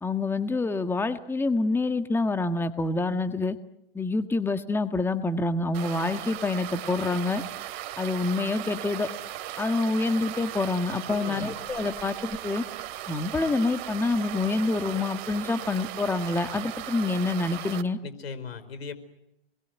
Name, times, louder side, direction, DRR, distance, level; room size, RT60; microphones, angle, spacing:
voice 1, 0.0-3.5 3.9-7.4 8.0-9.1 9.6-12.6 13.1-18.0, left 3 dB, 5° left, 9 dB, 1.6 m, -27 dB
sound 1, 5.7-17.8, right 14 dB, 50° right, 2.5 m, -37 dB
voice 2, 11.1-11.5 18.0-19.0, left 5 dB, 85° left, 10 dB, 4.8 m, -38 dB
28.5 x 21.5 x 9.3 m, 0.82 s
hypercardioid pair, 120°, 30 cm